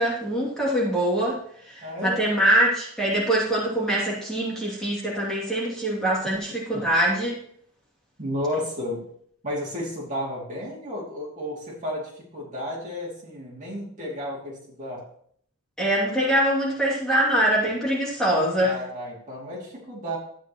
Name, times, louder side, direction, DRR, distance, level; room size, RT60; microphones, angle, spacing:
voice 1, 0.0-1.4 1.6-7.4 15.8-18.7, right 1 dB, 5° left, -6 dB, 2.6 m, -23 dB
voice 2, 1.8-2.2 6.7-6.8 8.2-9.0 9.4-15.0 18.6-20.2, left 1 dB, 35° right, -5 dB, 2.7 m, -32 dB
12.5 x 8.8 x 3.1 m, 0.65 s
head